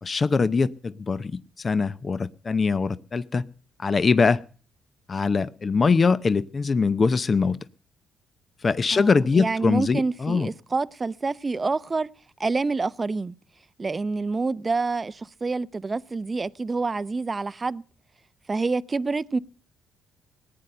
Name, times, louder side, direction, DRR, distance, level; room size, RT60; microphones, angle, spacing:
voice 1, 0.0-1.3 1.6-3.4 3.8-4.4 5.1-7.6 8.6-10.5, left 4 dB, 35° left, 0.7 m, -22 dB
voice 2, 8.9-12.1 12.4-13.3 13.8-17.8 18.5-19.4, right 3 dB, 30° right, 0.6 m, -27 dB
19.0 x 9.5 x 6.7 m
cardioid pair, 90°, 0 cm